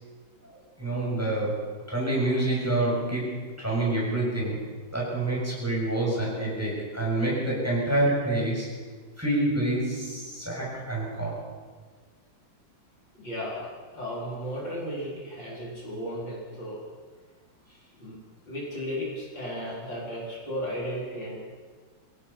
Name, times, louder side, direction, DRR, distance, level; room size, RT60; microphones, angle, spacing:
voice 1, 0.8-4.6 4.9-8.7 9.2-11.4, right 2 dB, 5° right, -4 dB, 7.0 m, -27 dB
voice 2, 13.1-13.7 13.9-16.8 18.0-18.2 18.5-21.4, equal, 60° left, -4 dB, 5.3 m, -34 dB
27.0 x 17.0 x 5.7 m, 1.5 s
omnidirectional pair, 2.3 m